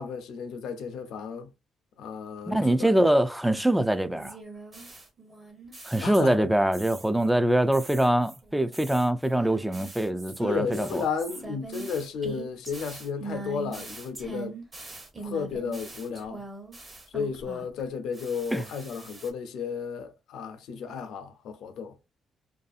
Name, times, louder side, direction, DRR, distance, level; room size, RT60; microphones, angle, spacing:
voice 1, 0.0-1.5 2.0-3.1 6.0-6.5 10.4-14.6 15.2-16.4 17.1-21.9, left 6 dB, 80° left, 0.5 m, -33 dB
voice 2, 2.5-4.4 5.9-11.0 18.5-18.6, right 1 dB, 5° right, 0.3 m, -24 dB
sound 1, 4.2-6.5 6.7-7.3 7.7-17.8 18.1-19.3, right 3 dB, 25° right, 0.9 m, -42 dB
2.6 x 2.3 x 2.4 m
cardioid pair, 90°, 0 cm